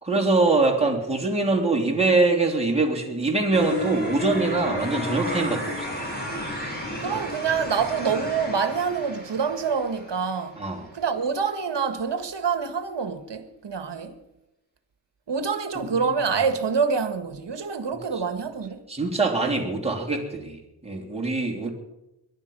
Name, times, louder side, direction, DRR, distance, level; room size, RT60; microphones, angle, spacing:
voice 1, 0.0-5.9 10.6-10.9 15.7-16.1 18.1-18.2 18.9-21.7, right 3 dB, 15° right, 3.2 m, -23 dB
sound 1, 3.5-10.5, left 1 dB, 20° left, 6.2 m, -32 dB
voice 2, 7.0-10.6 10.9-14.1 15.3-18.8, right 6 dB, 65° right, 1.6 m, -26 dB
22.0 x 11.0 x 5.4 m
wide cardioid pair, 85°, 45 cm